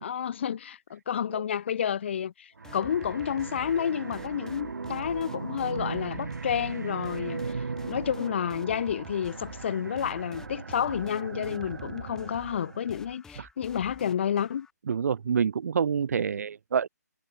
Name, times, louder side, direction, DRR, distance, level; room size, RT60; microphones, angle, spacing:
voice 1, 0.0-14.7, left 8 dB, 40° left, 0.6 m, -30 dB
sound 1, 2.6-14.7, left 5 dB, 5° left, 2.7 m, -52 dB
sound 2, 2.6-13.1, right 4 dB, 85° right, 0.9 m, -38 dB
voice 2, 14.9-16.9, right 7 dB, 60° right, 0.4 m, -27 dB
hypercardioid pair, 160°, 9 cm